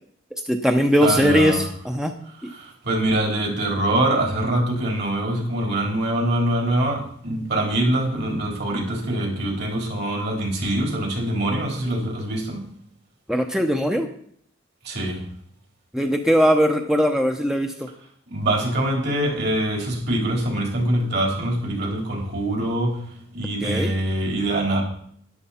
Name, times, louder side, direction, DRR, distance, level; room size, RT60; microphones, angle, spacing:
voice 1, 0.5-2.1 13.3-14.1 15.9-17.9 23.6-23.9, equal, 5° right, 4 dB, 0.8 m, -20 dB
voice 2, 1.0-1.6 2.4-12.6 14.8-15.2 18.3-23.0 23.3-24.8, right 1 dB, 55° right, 0 dB, 4.0 m, -24 dB
13.0 x 11.0 x 4.3 m, 0.63 s
head